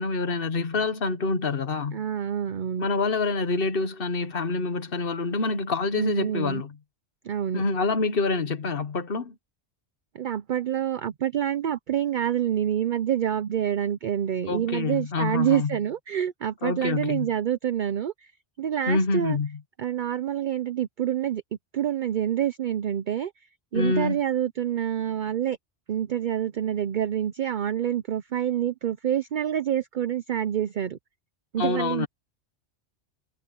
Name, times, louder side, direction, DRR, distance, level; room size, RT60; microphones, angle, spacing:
voice 1, 0.0-2.0 2.8-6.8 7.5-9.3 14.5-15.8 16.6-17.3 18.9-19.6 23.7-24.2 31.6-32.1, left 3 dB, 55° left, 1.4 m, -26 dB
voice 2, 1.9-2.9 5.9-6.6 7.2-7.6 10.1-18.1 18.6-19.4 19.8-21.4 21.7-23.3 23.7-25.6 25.9-31.0 31.5-32.1, right 10 dB, 55° right, 0.6 m, -27 dB
omnidirectional pair, 1.2 m